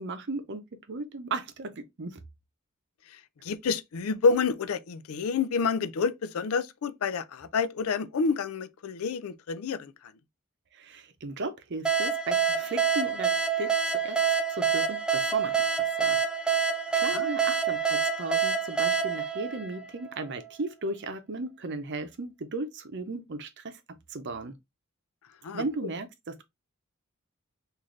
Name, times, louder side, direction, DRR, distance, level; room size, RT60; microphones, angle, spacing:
voice 1, 0.0-2.2 10.7-14.2 14.5-16.2 16.9-23.8 24.1-24.6 25.5-26.3, right 2 dB, 55° right, 0.7 m, -36 dB
voice 2, 3.4-9.9 17.1-17.3 25.4-25.6, left 5 dB, 90° left, 0.4 m, -28 dB
sound 1, 11.8-20.3, right 6 dB, 5° right, 0.5 m, -27 dB
3.8 x 2.6 x 3.1 m
head